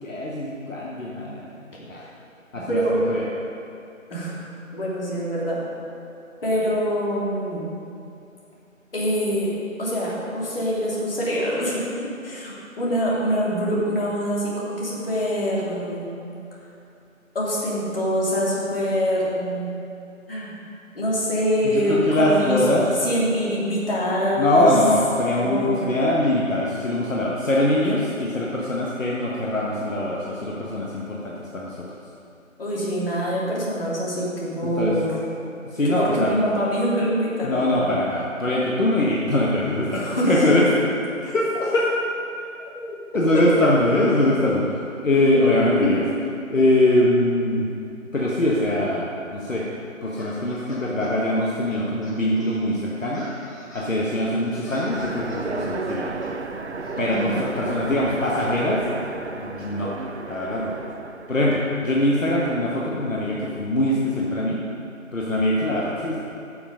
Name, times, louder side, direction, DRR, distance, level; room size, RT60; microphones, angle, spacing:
voice 1, 0.0-1.5 1.8-2.0 2.5-3.3 21.6-22.8 24.4-31.9 34.6-35.0 35.6-36.4 37.4-40.7 41.2-41.9 42.7-46.0 46.5-47.7 48.1-49.7 50.0-53.3 53.7-56.1 57.0-58.8 59.3-59.9 60.3-60.7 61.3-64.6 65.1-66.2, left 1 dB, 70° left, -4 dB, 1.6 m, -22 dB
voice 2, 2.5-3.0 4.1-4.4 4.7-5.6 6.4-7.7 8.9-9.5 9.8-11.8 12.2-16.1 17.3-19.7 20.3-20.6 20.9-22.8 23.0-24.7 25.4-25.9 32.6-35.3 35.9-37.8 39.9-40.3 43.3-43.4 57.0-57.5, equal, 45° left, -6 dB, 3.0 m, -25 dB
sound 1, 50.2-51.1 51.7-53.9 54.4-56.3 56.8-57.2, left 1 dB, 15° left, 1.0 m, -43 dB
Train, 54.9-61.8, right 3 dB, 55° right, 0.7 m, -33 dB
13.0 x 7.0 x 5.2 m, 2.6 s
figure-of-eight pair, 165°, 40 cm